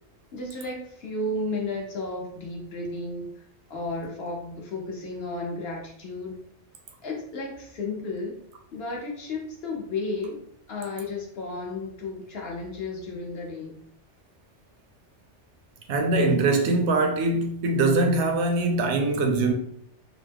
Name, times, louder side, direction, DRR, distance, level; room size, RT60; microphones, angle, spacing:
voice 1, 0.3-3.4 3.7-6.4 7.0-8.4 8.7-10.4 10.7-13.8, left 2 dB, 60° left, 1.1 m, -33 dB
voice 2, 15.9-19.5, right 2 dB, 75° right, 0.9 m, -22 dB
3.1 x 2.0 x 3.4 m
omnidirectional pair, 1.2 m